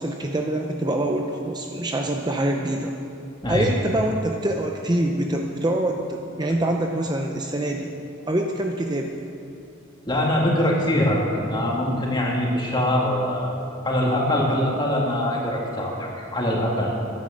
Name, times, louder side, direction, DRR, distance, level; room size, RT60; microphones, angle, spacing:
voice 1, 0.0-2.9 3.5-7.9 8.3-9.1, right 1 dB, 20° right, 2 dB, 0.7 m, -25 dB
voice 2, 10.1-13.6 13.8-16.9, left 1 dB, 20° left, -2 dB, 2.2 m, -23 dB
11.0 x 10.5 x 7.6 m, 2.8 s
head